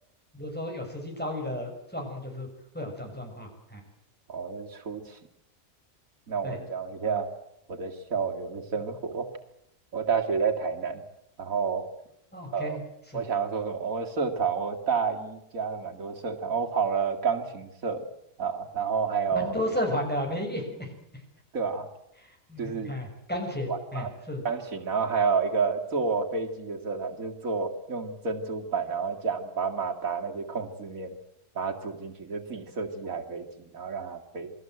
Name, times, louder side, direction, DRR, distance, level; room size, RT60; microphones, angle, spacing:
voice 1, 0.3-2.5 2.7-3.8 6.4-6.6 12.3-12.8 13.1-13.2 19.3-20.9 22.2-24.4, left 1 dB, 5° left, 2 dB, 6.6 m, -33 dB
voice 2, 4.3-5.2 6.3-7.3 7.7-9.3 9.9-11.0 11.4-11.8 12.5-12.8 13.1-18.0 18.4-19.5 21.5-21.9 22.6-22.9 23.7-24.1 24.4-31.2 31.5-34.5, right 5 dB, 90° right, 3 dB, 2.7 m, -30 dB
28.5 x 20.5 x 7.9 m, 0.79 s
omnidirectional pair, 1.4 m